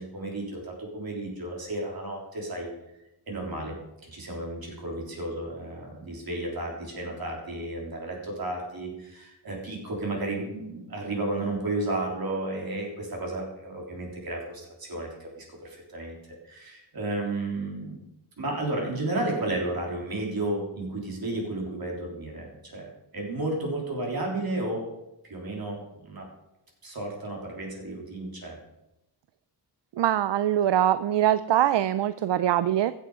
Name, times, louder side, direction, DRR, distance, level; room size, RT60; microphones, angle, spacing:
voice 1, 0.0-2.7 3.3-3.8 4.0-16.2 16.4-18.0 18.4-24.9 25.2-26.3 26.8-28.6, right 2 dB, 55° right, -1 dB, 3.8 m, -33 dB
voice 2, 30.0-32.9, right 11 dB, 80° right, 14 dB, 0.5 m, -23 dB
15.5 x 7.2 x 5.0 m, 0.92 s
wide cardioid pair, 115°, 42 cm